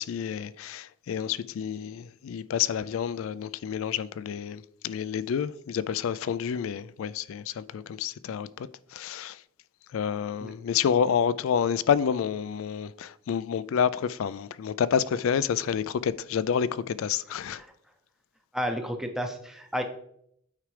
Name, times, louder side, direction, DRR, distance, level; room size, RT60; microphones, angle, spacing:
voice 1, 0.0-9.4 9.9-17.6, left 7 dB, 65° left, 0.3 m, -29 dB
voice 2, 18.5-19.8, equal, ahead, 0.7 m, -32 dB
8.9 x 4.9 x 3.2 m
head